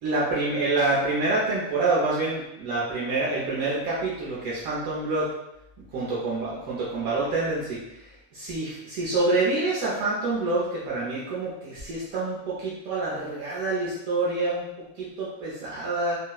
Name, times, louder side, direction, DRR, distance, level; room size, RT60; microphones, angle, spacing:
voice 1, 0.0-5.3 5.9-14.6 15.0-16.2, right 2 dB, 80° right, -7 dB, 1.1 m, -27 dB
3.7 x 2.0 x 2.3 m, 0.87 s
omnidirectional pair, 1.5 m